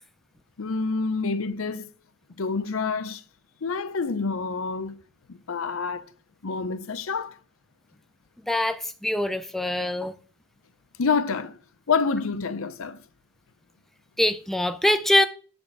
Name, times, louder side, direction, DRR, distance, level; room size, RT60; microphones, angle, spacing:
voice 1, 0.6-1.8 2.4-3.2 3.6-5.0 5.3-6.1 6.4-7.3 11.0-11.6 11.9-13.0, left 4 dB, 70° left, 0.6 m, -27 dB
voice 2, 8.5-10.1 14.2-15.3, left 1 dB, ahead, 0.3 m, -23 dB
6.9 x 5.2 x 4.7 m
head